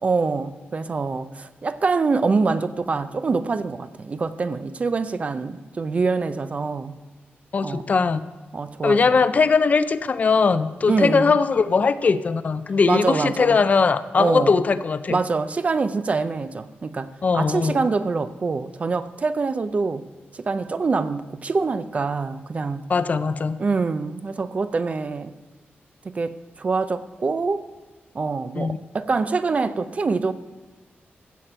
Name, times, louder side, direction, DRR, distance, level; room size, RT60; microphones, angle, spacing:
voice 1, 0.0-7.0 7.6-7.9 8.5-9.0 10.9-11.4 12.9-13.6 14.2-14.6 15.1-20.1 20.3-22.9 23.6-25.3 26.1-27.7 28.1-30.3, right 4 dB, 35° right, 0.4 m, -25 dB
voice 2, 7.5-8.2 8.8-15.2 17.2-17.9 22.9-23.6 28.5-28.8, left 5 dB, 40° left, 0.4 m, -20 dB
15.0 x 7.5 x 4.4 m
wide cardioid pair, 180°, 4 cm